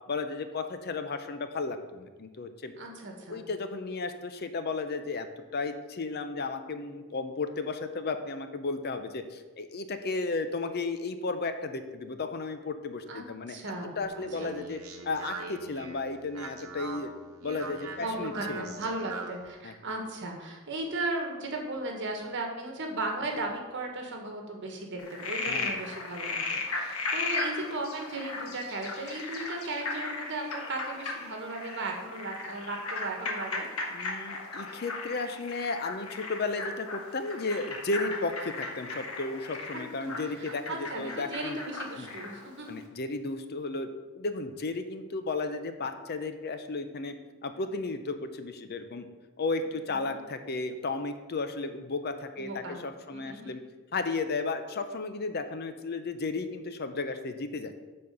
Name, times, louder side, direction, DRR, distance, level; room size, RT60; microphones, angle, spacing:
voice 1, 0.1-2.7 3.3-5.3 5.5-13.6 14.0-17.1 17.4-18.8 19.6-19.7 25.5-25.8 33.9-41.6 42.0-42.1 42.7-43.9 44.1-47.2 47.4-49.1 49.4-53.6 53.9-57.8, left 3 dB, 50° left, 9 dB, 0.6 m, -34 dB
voice 2, 2.8-3.4 13.1-14.6 18.0-33.7 39.7-39.8 40.3-42.8 49.9-50.2 52.4-52.8 53.1-53.5, right 2 dB, 55° right, 2 dB, 1.6 m, -36 dB
Speech, 14.0-19.5, right 3 dB, 80° right, 1.0 m, -41 dB
Frog, 25.0-42.4, left 3 dB, 80° left, 1.4 m, -36 dB
8.5 x 4.4 x 6.7 m, 1.3 s
head